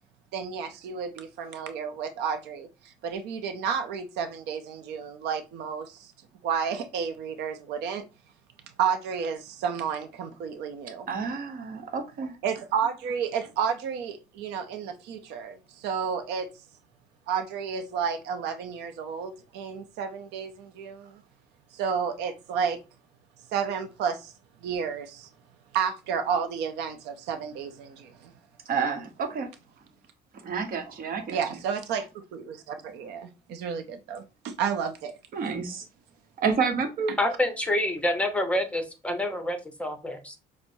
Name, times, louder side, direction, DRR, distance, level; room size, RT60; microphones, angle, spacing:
voice 1, 0.3-6.1 6.4-8.0 8.8-11.1 12.4-16.5 17.3-21.2 21.7-22.8 23.5-24.3 24.6-25.3 25.7-28.3 31.3-35.2 37.1-37.2, right 7 dB, 85° right, 0.6 m, -31 dB
voice 2, 11.1-12.4 28.7-29.5 30.4-31.4 35.3-35.8 36.4-37.1, right 5 dB, 55° right, 0.9 m, -29 dB
voice 3, 37.2-40.4, left 1 dB, 5° left, 0.7 m, -27 dB
5.9 x 2.0 x 2.6 m
cardioid pair, 110°, 17 cm